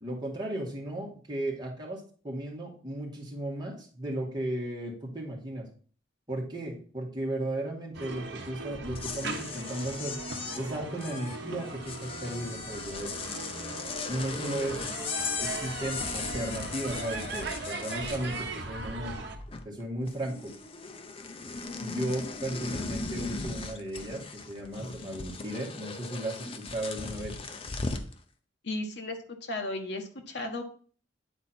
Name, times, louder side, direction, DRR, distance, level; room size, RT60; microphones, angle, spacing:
voice 1, 0.0-5.7 6.3-10.2 10.5-13.1 14.1-14.9 15.4-19.2 19.7-20.5 21.8-27.4, right 1 dB, 20° right, -2 dB, 1.8 m, -35 dB
sound 1, 7.9-19.4, right 3 dB, 60° right, 1.1 m, -39 dB
sound 2, 8.8-18.8 19.1-19.8 20.1-28.1, left 4 dB, 30° left, 0.6 m, -38 dB
voice 2, 28.6-30.6, left 2 dB, 60° left, 3 dB, 1.2 m, -35 dB
9.1 x 4.0 x 4.3 m, 0.43 s
head